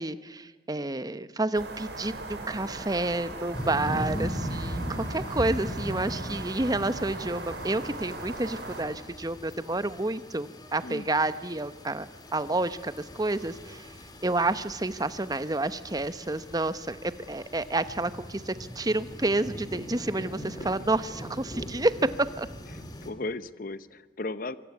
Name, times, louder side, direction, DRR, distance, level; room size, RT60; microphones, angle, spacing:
voice 1, 0.0-13.9 14.2-22.5, right 2 dB, 20° right, 13 dB, 1.0 m, -29 dB
sound 1, 1.5-8.8, right 2 dB, 80° right, 5.4 m, -39 dB
sound 2, 3.5-23.1, equal, 25° left, 2.7 m, -39 dB
voice 2, 3.9-4.3 10.8-11.1 19.9-20.1 20.6-20.7 22.7-24.6, left 2 dB, 55° left, 15 dB, 0.9 m, -37 dB
25.5 x 23.5 x 9.7 m, 1.3 s
head